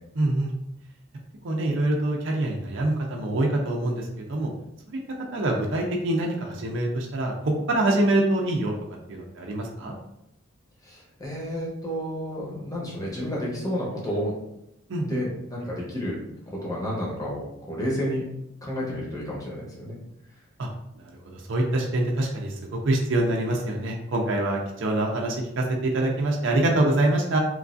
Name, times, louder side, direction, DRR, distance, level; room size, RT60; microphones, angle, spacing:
voice 1, 0.2-0.5 1.4-4.5 4.9-5.0 5.3-8.7 9.1-9.9 14.9-15.2 20.6-20.7 21.2-27.4, right 1 dB, 65° right, 0 dB, 0.5 m, -25 dB
voice 2, 10.8-14.3 15.1-16.2 16.6-18.2 18.6-20.0, equal, 20° left, -4 dB, 0.8 m, -31 dB
3.1 x 2.4 x 2.5 m, 0.81 s
head